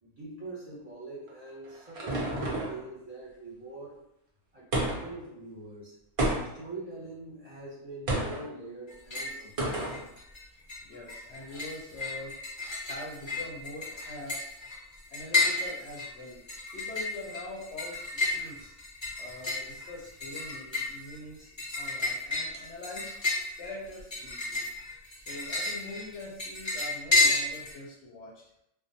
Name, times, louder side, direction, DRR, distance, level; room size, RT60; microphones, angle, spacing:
voice 1, 0.0-4.0 4.5-5.9 6.5-10.0 18.4-18.5, right 2 dB, 35° right, -9 dB, 0.7 m, -44 dB
sound 1, 1.3-2.8 4.7-5.2 6.2-6.7 8.1-8.4 9.6-10.0, right 1 dB, 60° right, 0.3 m, -30 dB
sound 2, 8.9-9.4 9.7-10.4 10.7-27.7, left 3 dB, 35° left, 0.5 m, -31 dB
voice 2, 10.8-12.3 12.8-14.4 15.1-16.4 16.7-18.7 19.2-23.2 23.6-24.7 25.1-28.3, left 1 dB, 65° left, -4 dB, 0.8 m, -43 dB
2.3 x 2.1 x 2.6 m, 0.78 s
omnidirectional pair, 1.4 m